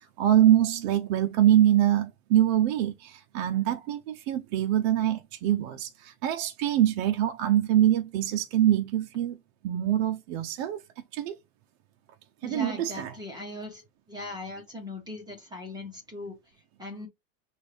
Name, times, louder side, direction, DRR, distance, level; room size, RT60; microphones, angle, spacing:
voice 1, 0.0-9.4 9.6-10.8 11.1-11.4 12.4-13.1, right 12 dB, 55° right, 0.7 m, -24 dB
voice 2, 12.4-13.8 14.1-16.4 16.8-17.1, left 2 dB, 10° right, 1.2 m, -39 dB
6.1 x 2.6 x 3.3 m
supercardioid pair, 155°, 39 cm